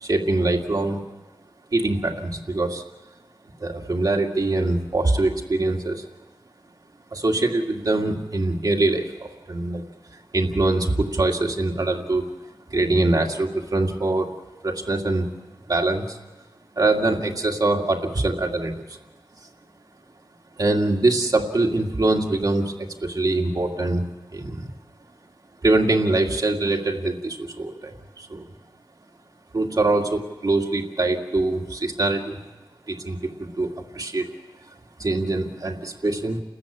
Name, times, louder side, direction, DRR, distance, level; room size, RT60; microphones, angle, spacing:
voice 1, 0.0-1.0 1.7-2.8 3.6-6.0 7.1-9.8 10.3-12.3 12.7-14.4 14.6-15.3 15.7-16.2 16.8-18.8 20.6-24.0 24.3-24.7 25.6-28.4 29.5-32.4 32.9-34.3 35.0-36.4, right 2 dB, 50° right, 1 dB, 2.2 m, -23 dB
29.5 x 14.0 x 8.6 m, 1.1 s
wide cardioid pair, 90°, 8 cm